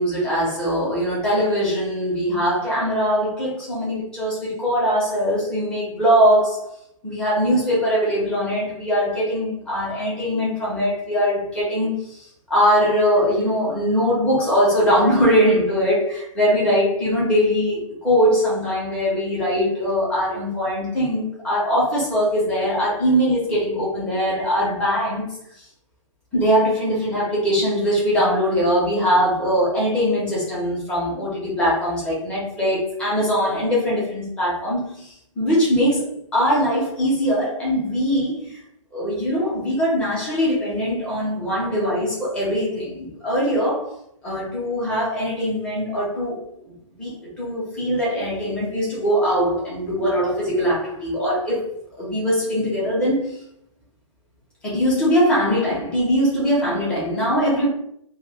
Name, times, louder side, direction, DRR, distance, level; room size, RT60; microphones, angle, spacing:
voice 1, 0.0-6.7 7.0-25.3 26.3-38.6 38.9-43.9 44.2-46.4 47.0-51.6 52.0-53.4 54.6-57.7, equal, 5° left, -7 dB, 0.6 m, -21 dB
2.2 x 2.0 x 3.4 m, 0.74 s
hypercardioid pair, 160°, 18 cm